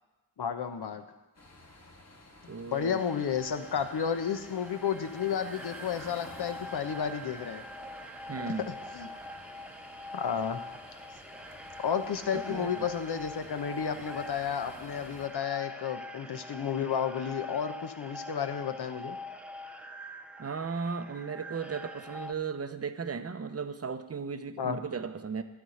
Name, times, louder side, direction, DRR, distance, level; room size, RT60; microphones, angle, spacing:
voice 1, 0.4-1.0 2.4-7.6 8.7-9.1 10.1-10.6 11.8-19.2 24.6-24.8, left 7 dB, 60° left, 8 dB, 1.0 m, -32 dB
sound 1, 1.3-15.3, left 2 dB, 35° left, 1.8 m, -52 dB
voice 2, 2.5-3.0 8.3-8.7 12.3-12.9 20.4-25.4, right 5 dB, 35° right, 10 dB, 0.8 m, -36 dB
sound 2, 2.7-22.3, left 1 dB, 5° right, 0.6 m, -44 dB
12.5 x 4.3 x 7.9 m, 1.1 s
supercardioid pair, 40°, 45 cm